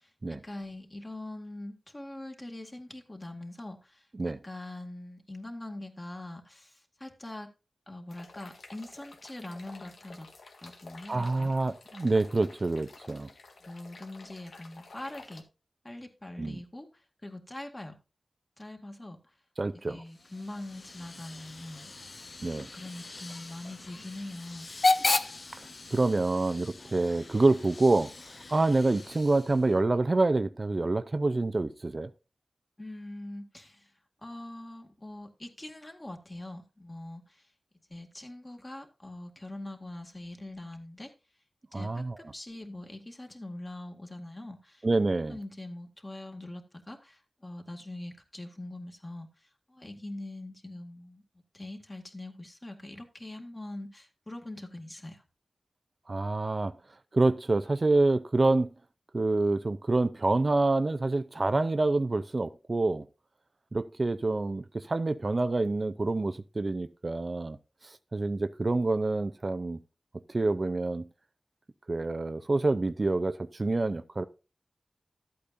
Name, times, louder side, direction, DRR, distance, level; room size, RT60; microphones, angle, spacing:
voice 1, 0.0-7.5 7.9-10.3 10.6-11.5 13.6-15.4 15.8-18.0 18.6-19.2 19.7-22.2 22.6-24.7 32.8-33.9 34.2-37.5 37.9-41.1 41.7-44.9 45.3-51.2 51.5-55.2, left 1 dB, 25° left, 2.0 m, -43 dB
sound 1, 8.1-15.4, left 3 dB, 90° left, 1.6 m, -51 dB
voice 2, 11.1-13.3 16.4-16.6 19.6-20.0 22.4-22.7 25.5-28.1 28.5-32.1 41.7-42.2 44.8-45.4 56.1-56.7 57.1-58.7 59.1-63.1 63.7-67.6 67.8-69.8 70.3-71.1 71.9-74.2, right 2 dB, 45° right, 0.5 m, -27 dB
Hiss / Train / Alarm, 20.1-29.8, left 3 dB, 55° left, 0.8 m, -35 dB
13.0 x 8.5 x 2.6 m
wide cardioid pair, 70°, 0 cm